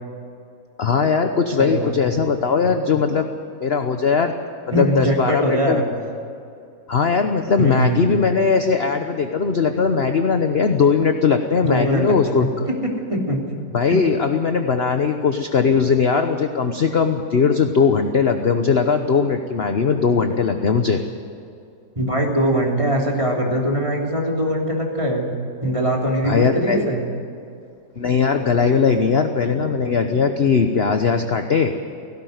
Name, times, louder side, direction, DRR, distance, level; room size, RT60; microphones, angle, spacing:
voice 1, 0.8-3.3 3.6-4.3 4.8-5.8 6.9-12.5 13.7-21.0 26.2-26.9 28.0-31.7, left 5 dB, 45° left, 6 dB, 1.0 m, -19 dB
voice 2, 1.6-2.1 4.7-5.8 7.6-8.1 11.6-12.5 12.8-13.4 13.9-14.0 21.9-25.3 25.6-27.0, right 1 dB, 15° right, -1 dB, 3.2 m, -22 dB
17.5 x 17.0 x 9.3 m, 2.5 s
omnidirectional pair, 1.8 m